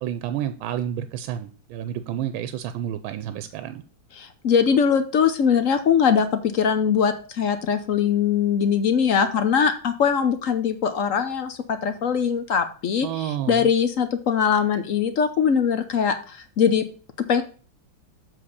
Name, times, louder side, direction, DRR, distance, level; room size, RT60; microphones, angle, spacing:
voice 1, 0.0-3.8 13.0-13.7, right 10 dB, 85° right, 11 dB, 1.4 m, -30 dB
voice 2, 4.1-16.8 17.2-17.4, left 7 dB, 60° left, 9 dB, 0.9 m, -21 dB
7.5 x 4.2 x 6.6 m, 0.38 s
omnidirectional pair, 2.2 m